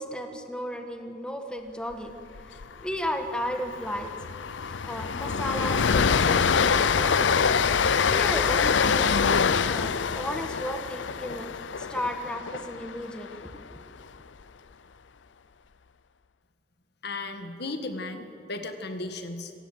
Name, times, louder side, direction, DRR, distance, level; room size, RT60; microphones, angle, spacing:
voice 1, 0.0-2.2 2.5-4.1 4.6-7.5 8.1-9.4 9.7-13.8, equal, 5° left, 4 dB, 1.5 m, -34 dB
Train, 2.4-2.6 2.9-3.1 3.4-13.6, left 6 dB, 90° left, 0.6 m, -25 dB
voice 2, 17.0-19.5, left 2 dB, 65° left, 7 dB, 1.8 m, -35 dB
26.0 x 16.5 x 8.0 m, 2.5 s
head